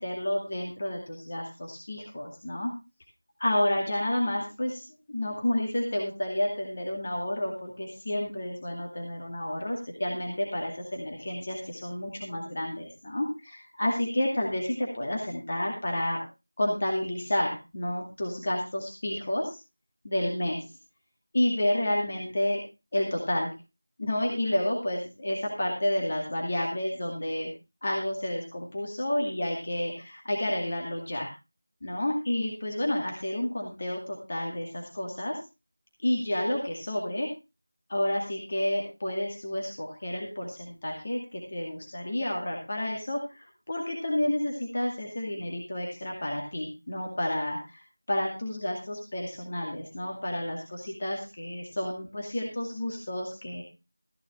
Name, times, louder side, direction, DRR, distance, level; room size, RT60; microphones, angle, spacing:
voice 1, 0.0-2.7 3.4-4.8 5.1-16.2 16.6-19.6 20.0-20.6 21.3-22.6 22.9-23.5 24.0-27.5 27.8-31.3 31.8-35.4 36.0-37.3 37.9-47.8 48.1-53.6, left 1 dB, 30° left, 0 dB, 2.3 m, -30 dB
14.5 x 10.5 x 3.6 m, 0.27 s
figure-of-eight pair, 175°, 0 cm